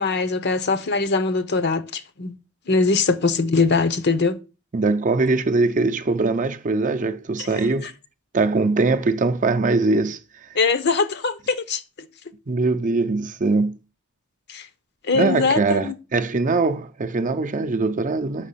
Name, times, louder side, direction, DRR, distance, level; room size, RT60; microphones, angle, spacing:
voice 1, 0.0-2.4 2.7-4.4 7.4-7.5 7.8-7.9 10.5-11.8 14.5-14.7 15.0-15.9, left 4 dB, 55° left, 0.8 m, -22 dB
voice 2, 4.7-7.9 8.3-10.2 12.5-13.8 15.1-18.5, right 3 dB, 35° right, 0.6 m, -22 dB
6.3 x 5.9 x 5.7 m
head